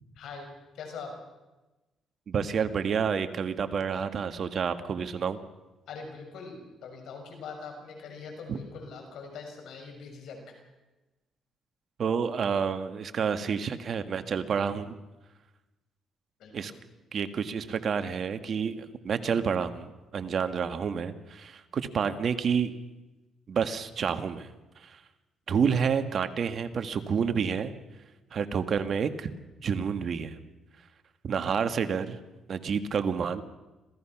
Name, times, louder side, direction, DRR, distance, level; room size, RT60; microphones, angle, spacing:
voice 1, 0.1-0.5 0.7-1.1 5.9-10.4 16.4-16.7, left 5 dB, 75° left, 3 dB, 6.4 m, -42 dB
voice 2, 2.3-5.4 8.5-8.6 12.0-15.0 16.5-16.7 17.1-22.7 23.5-24.5 24.8-25.0 25.5-27.7 28.3-29.3 29.6-30.4 31.2-32.2 32.5-33.4, right 6 dB, 55° right, 9 dB, 1.6 m, -29 dB
26.5 x 17.0 x 6.0 m, 1.1 s
cardioid pair, 90°, 0 cm